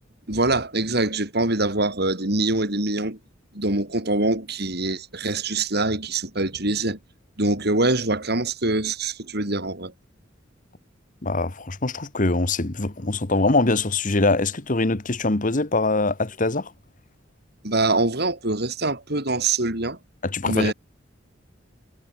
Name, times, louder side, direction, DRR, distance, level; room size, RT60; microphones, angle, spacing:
voice 1, 0.3-3.2 3.5-7.0 7.4-9.9 17.6-20.0 20.4-20.7, right 2 dB, 55° right, 5.2 m, -24 dB
voice 2, 11.2-16.7 20.2-20.7, left 2 dB, 45° left, 1.5 m, -23 dB
head